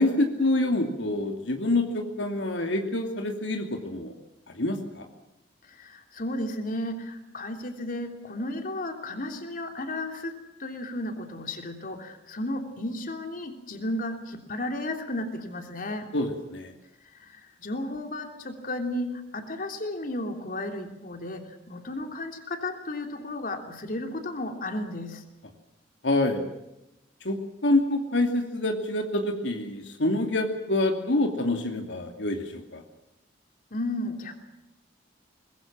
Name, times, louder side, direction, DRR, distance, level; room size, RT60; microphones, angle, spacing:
voice 1, 0.0-4.1 4.5-5.1 16.1-16.7 26.0-26.4 27.2-32.8, left 2 dB, 80° left, 4 dB, 2.7 m, -26 dB
voice 2, 5.6-16.1 17.0-25.2 33.7-34.3, left 1 dB, 50° left, 5 dB, 3.3 m, -34 dB
24.0 x 20.5 x 7.5 m, 0.94 s
head